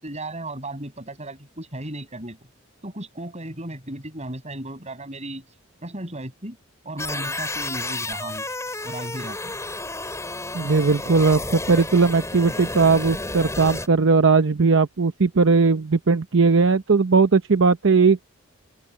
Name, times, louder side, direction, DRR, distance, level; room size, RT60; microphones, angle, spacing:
voice 1, 0.0-2.4 2.8-5.4 5.8-6.6 6.8-8.5 8.8-9.6, right 1 dB, 30° right, 7.8 m, -35 dB
sound 1, 7.0-13.9, left 2 dB, 15° left, 4.9 m, -31 dB
voice 2, 10.5-18.4, right 4 dB, 60° right, 0.8 m, -18 dB
open air
head